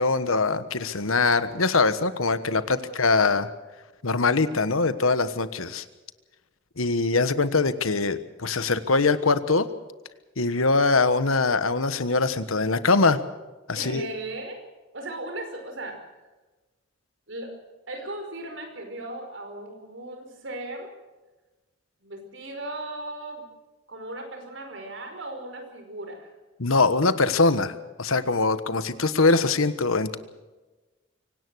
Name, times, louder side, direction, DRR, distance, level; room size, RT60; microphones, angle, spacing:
voice 1, 0.0-3.5 4.0-5.8 6.8-9.7 10.4-13.2 13.7-14.1 26.6-30.2, left 3 dB, 85° left, 13 dB, 1.4 m, -22 dB
voice 2, 13.7-14.6 14.9-16.3 17.3-20.9 22.0-23.5 23.9-26.3, right 2 dB, 60° right, 5 dB, 5.2 m, -37 dB
24.5 x 18.0 x 6.4 m, 1.2 s
head